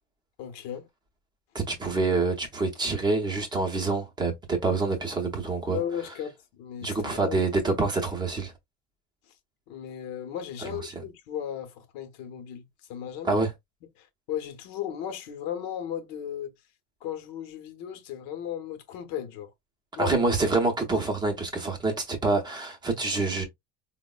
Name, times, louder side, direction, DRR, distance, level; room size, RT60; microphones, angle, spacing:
voice 1, 0.4-0.9 5.7-7.4 9.7-12.6 12.9-13.4 14.0-16.5 17.0-19.5 20.0-20.1, left 10 dB, 70° left, 0.8 m, -36 dB
voice 2, 1.5-5.8 6.8-8.5 10.6-10.9 13.2-13.5 20.0-23.5, right 3 dB, 10° right, 0.6 m, -26 dB
4.5 x 2.1 x 2.3 m
cardioid pair, 175°, 37 cm